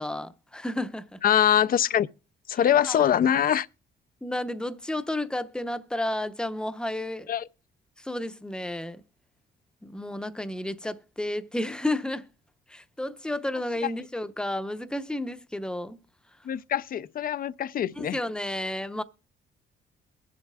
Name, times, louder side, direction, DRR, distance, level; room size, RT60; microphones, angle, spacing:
voice 1, 0.0-1.2 2.8-3.1 4.2-7.3 8.0-9.0 9.8-12.3 12.7-16.0 18.0-19.0, left 1 dB, 5° left, 0.7 m, -32 dB
voice 2, 1.2-2.1 2.5-3.7 7.3-7.5 16.5-18.2, left 10 dB, 45° left, 0.4 m, -23 dB
22.0 x 7.4 x 2.3 m
cardioid pair, 90°, 20 cm